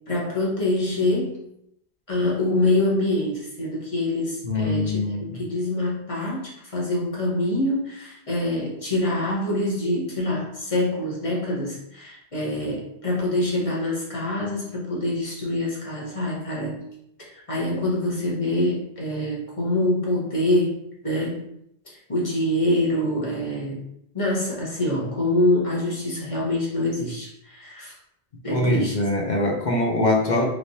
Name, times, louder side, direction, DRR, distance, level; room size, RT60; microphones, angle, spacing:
voice 1, 0.1-1.4 2.1-16.8 17.5-20.8 21.0-21.4 21.8-23.8 24.1-27.9 28.4-28.9, left 1 dB, 35° left, -5 dB, 1.0 m, -25 dB
voice 2, 4.4-5.4 28.5-30.5, left 2 dB, 50° left, 0 dB, 0.7 m, -23 dB
3.2 x 3.1 x 2.7 m, 0.78 s
omnidirectional pair, 1.1 m